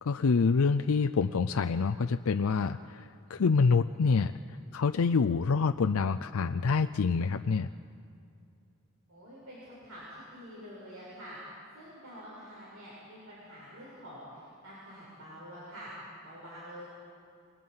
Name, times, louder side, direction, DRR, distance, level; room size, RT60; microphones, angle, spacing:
voice 1, 0.0-4.4 4.7-7.7, left 5 dB, 90° left, 8 dB, 0.5 m, -26 dB
voice 2, 9.1-11.4 11.7-15.9 16.2-16.8, equal, 85° right, -8 dB, 7.9 m, -47 dB
28.5 x 25.5 x 5.7 m, 2.4 s
head